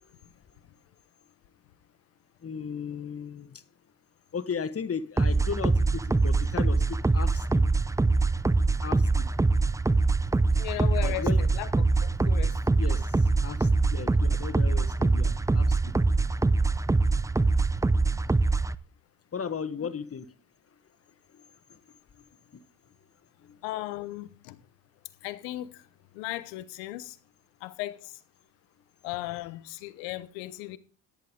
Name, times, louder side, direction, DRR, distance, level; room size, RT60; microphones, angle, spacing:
voice 1, 2.4-3.6 4.3-7.6 8.8-9.3 11.0-11.4 12.7-15.9 19.3-20.3 21.3-21.4 21.7-21.8 22.2-22.3 23.4-23.6, left 6 dB, 30° left, 1.3 m, -36 dB
sound 1, 5.2-18.8, right 3 dB, 5° right, 0.5 m, -24 dB
voice 2, 10.6-11.7 12.0-12.6 19.8-19.9 23.6-24.6 25.2-25.8 26.1-27.2 27.6-28.2 29.0-30.8, left 17 dB, 85° left, 1.0 m, -36 dB
13.5 x 10.5 x 3.7 m
hypercardioid pair, 60°, 45 cm